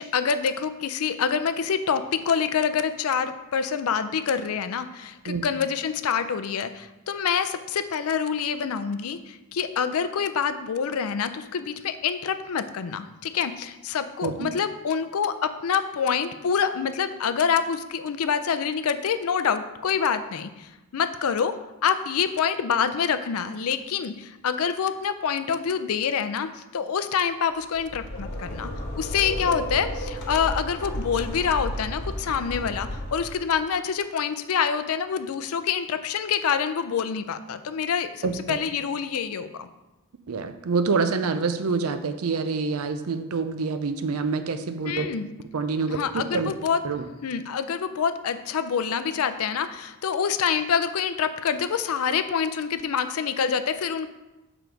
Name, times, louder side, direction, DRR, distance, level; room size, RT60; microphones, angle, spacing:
voice 1, 0.0-21.5 21.8-28.7 29.0-39.7 44.8-45.3 45.9-46.8 47.2-54.1, left 7 dB, 75° left, 11 dB, 0.4 m, -26 dB
sound 1, 27.6-33.7, left 1 dB, 50° left, 1.2 m, -33 dB
voice 2, 38.2-38.6 40.3-45.1 45.5-46.5 46.8-47.0, right 4 dB, 75° right, 9 dB, 0.5 m, -26 dB
6.9 x 3.9 x 4.5 m, 1.0 s
head